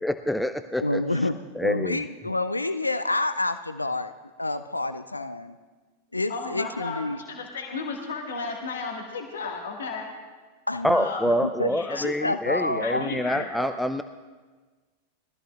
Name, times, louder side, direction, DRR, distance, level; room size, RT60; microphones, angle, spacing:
voice 1, 0.0-1.0 1.6-2.0 10.8-14.0, left 1 dB, ahead, 10 dB, 0.4 m, -26 dB
voice 2, 0.8-4.1 4.4-5.5 6.1-7.2 10.7-11.0 11.2-11.7 12.0-13.7, left 2 dB, 85° left, 12 dB, 0.4 m, -28 dB
voice 3, 6.3-10.1 10.9-11.3 11.7-12.0 12.8-13.5, left 4 dB, 65° left, 1 dB, 1.7 m, -34 dB
21.5 x 14.0 x 2.4 m, 1.4 s
figure-of-eight pair, 90°, 0 cm